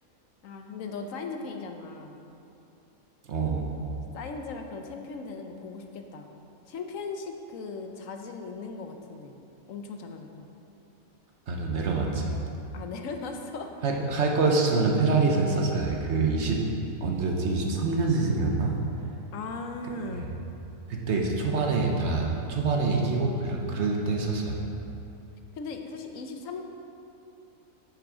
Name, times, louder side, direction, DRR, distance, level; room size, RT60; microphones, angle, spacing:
voice 1, 0.4-2.2 4.1-6.3 6.7-9.4 9.7-10.5 12.7-13.7 19.3-20.3 25.6-26.6, left 4 dB, 70° left, 4 dB, 1.1 m, -38 dB
voice 2, 3.3-3.7 11.5-12.4 13.8-16.6 17.0-18.7 20.1-20.3 20.9-24.7, right 3 dB, 55° right, 0 dB, 1.1 m, -26 dB
8.9 x 6.0 x 4.9 m, 2.8 s
omnidirectional pair, 1.5 m